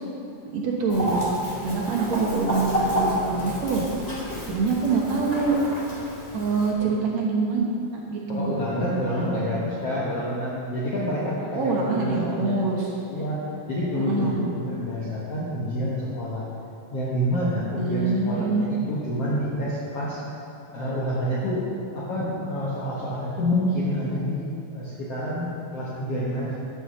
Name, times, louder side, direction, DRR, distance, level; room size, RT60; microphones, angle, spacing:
voice 1, 0.4-1.2 1.6-3.8 4.5-5.6 6.3-7.6 7.9-8.6 11.5-12.8 14.0-14.4 17.8-18.7, right 4 dB, 60° right, -2 dB, 2.1 m, -25 dB
Chicken rooster, 0.9-6.7, equal, 15° left, 1.4 m, -30 dB
voice 2, 8.3-12.8 13.1-16.4 16.9-20.2 20.7-21.7 21.9-24.4 24.7-26.6, equal, 55° left, -7 dB, 2.0 m, -28 dB
11.0 x 7.1 x 7.1 m, 2.6 s
omnidirectional pair, 4.1 m